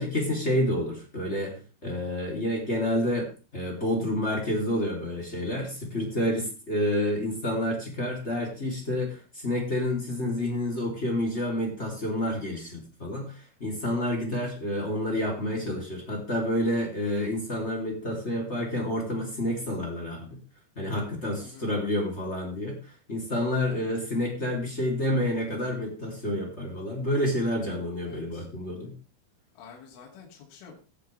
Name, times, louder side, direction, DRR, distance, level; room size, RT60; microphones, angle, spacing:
voice 1, 0.0-20.4 20.8-28.9, left 1 dB, 20° left, 0 dB, 2.3 m, -29 dB
voice 2, 23.7-24.0 28.0-28.5 29.5-30.8, left 6 dB, 70° left, -1 dB, 5.0 m, -49 dB
17.0 x 9.8 x 3.4 m, 0.35 s
omnidirectional pair, 6.0 m